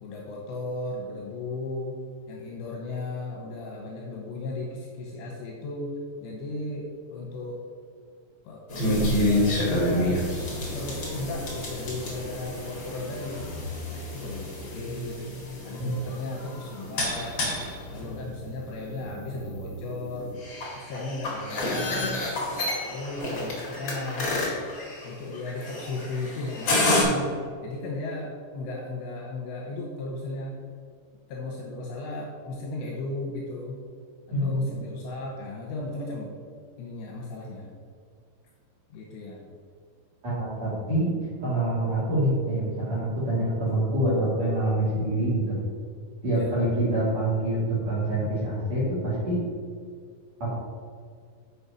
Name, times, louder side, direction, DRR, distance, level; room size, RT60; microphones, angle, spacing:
voice 1, 0.0-2.0 2.3-7.6 8.4-10.2 10.7-13.5 13.9-15.3 15.6-17.4 17.9-20.3 20.8-22.2 22.9-24.5 25.0-30.6 31.3-33.8 34.4-36.4 36.8-37.7 38.9-39.5 46.3-46.5, left 2 dB, 75° left, -2 dB, 2.8 m, -35 dB
sound 1, 8.7-27.0, left 1 dB, 50° left, 1.4 m, -29 dB
voice 2, 34.3-34.7 40.2-41.1 41.4-45.5 46.2-49.4 50.4-50.5, right 1 dB, 45° right, -8 dB, 2.5 m, -26 dB
6.9 x 6.3 x 5.5 m, 2.1 s
omnidirectional pair, 5.8 m